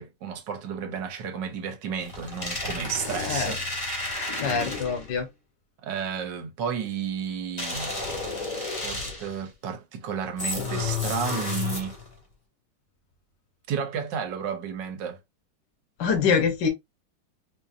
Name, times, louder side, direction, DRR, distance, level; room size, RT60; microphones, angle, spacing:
voice 1, 0.0-3.6 5.8-7.9 8.5-11.9 13.7-15.2, right 7 dB, 75° right, 1.5 m, -32 dB
sound 1, 2.0-5.2 7.6-9.4 10.4-12.1, left 3 dB, 20° left, 0.9 m, -31 dB
voice 2, 4.4-5.3 16.0-16.7, left 6 dB, 70° left, 1.5 m, -24 dB
4.2 x 2.8 x 2.4 m
omnidirectional pair, 2.1 m